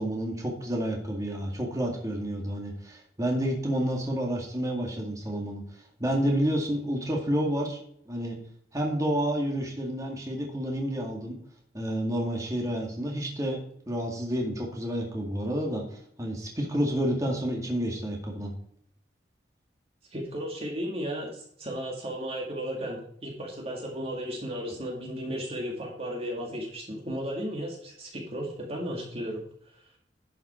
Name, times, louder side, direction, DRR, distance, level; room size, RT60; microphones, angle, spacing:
voice 1, 0.0-5.6 6.0-7.8 8.1-8.4 8.7-11.4 11.7-15.8 16.2-18.5, equal, 20° right, -1 dB, 2.1 m, -29 dB
voice 2, 20.1-29.4, equal, 35° right, -1 dB, 2.0 m, -34 dB
11.5 x 5.7 x 4.4 m, 0.65 s
head